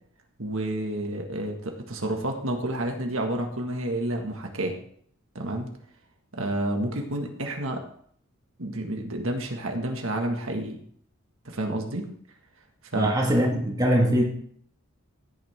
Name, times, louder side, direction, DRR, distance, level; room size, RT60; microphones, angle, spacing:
voice 1, 0.4-4.8 5.4-5.7 6.3-7.8 8.6-10.8 11.5-12.1 12.9-13.2, right 1 dB, 70° right, 2 dB, 1.9 m, -30 dB
voice 2, 12.9-14.2, equal, 15° right, -1 dB, 1.9 m, -22 dB
15.5 x 9.7 x 3.7 m, 0.62 s
head